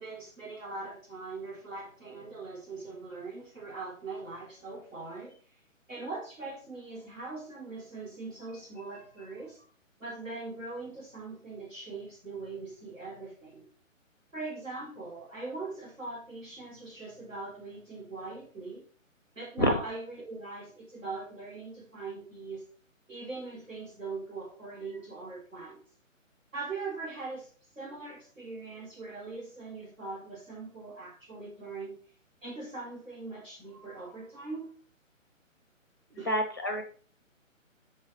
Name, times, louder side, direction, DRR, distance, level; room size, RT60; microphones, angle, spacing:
voice 1, 0.0-5.4 5.9-9.6 10.0-13.7 14.3-18.8 19.3-22.6 23.1-25.8 26.5-27.5 27.8-32.0 32.4-34.7 36.2-36.3, right 3 dB, 70° right, -5 dB, 3.2 m, -41 dB
voice 2, 36.3-36.8, equal, 15° left, 6 dB, 0.5 m, -27 dB
5.4 x 4.8 x 4.4 m, 0.42 s
figure-of-eight pair, 140°, 40 cm